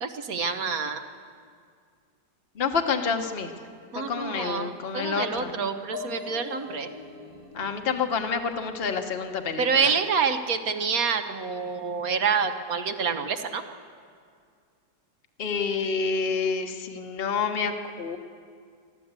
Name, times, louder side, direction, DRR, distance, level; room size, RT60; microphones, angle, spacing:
voice 1, 0.0-1.0 3.9-6.9 9.6-13.6, right 5 dB, 55° right, 7 dB, 1.4 m, -27 dB
voice 2, 2.5-3.5 3.9-5.5 7.5-9.9 15.4-18.2, left 5 dB, 35° left, 5 dB, 1.3 m, -28 dB
sound 1, 5.9-9.6, left 2 dB, 35° right, 1.5 m, -43 dB
23.5 x 14.0 x 8.2 m, 2.2 s
omnidirectional pair, 1.9 m